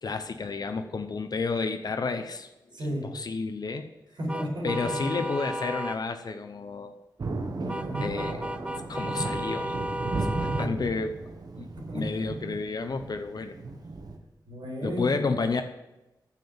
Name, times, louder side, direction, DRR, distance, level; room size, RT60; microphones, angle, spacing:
voice 1, 0.0-2.5 2.8-3.9 4.6-6.9 8.0-8.5 8.9-9.8 10.1-11.2 11.6-11.7 11.9-13.5 14.8-15.6, left 4 dB, 60° left, 7 dB, 0.7 m, -31 dB
voice 2, 2.7-3.1 4.2-5.2 7.6-8.2 10.5-10.7 11.9-12.0 14.4-15.1, equal, 90° right, -3 dB, 4.9 m, -33 dB
sound 1, 4.3-6.0 7.7-10.7, equal, 15° right, 0.5 m, -34 dB
Thunder, 7.2-14.2, right 3 dB, 55° right, 1.2 m, -35 dB
9.4 x 7.4 x 7.1 m, 0.99 s
wide cardioid pair, 115°, 8 cm